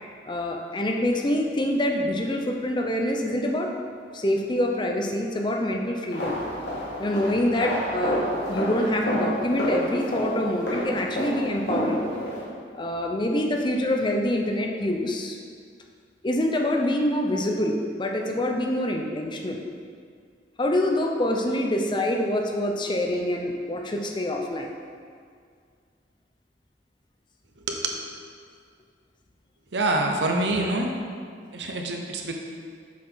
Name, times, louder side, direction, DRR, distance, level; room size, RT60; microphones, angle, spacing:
voice 1, 0.2-3.7 4.1-6.4 7.0-12.0 12.7-15.4 16.2-19.6 20.6-24.7, left 1 dB, 25° left, 2 dB, 0.6 m, -25 dB
sound 1, 6.1-12.4, equal, 70° left, 1.7 m, -29 dB
voice 2, 29.7-30.9 31.5-32.3, right 2 dB, 75° right, 2 dB, 0.8 m, -25 dB
7.4 x 5.9 x 3.9 m, 2.1 s
head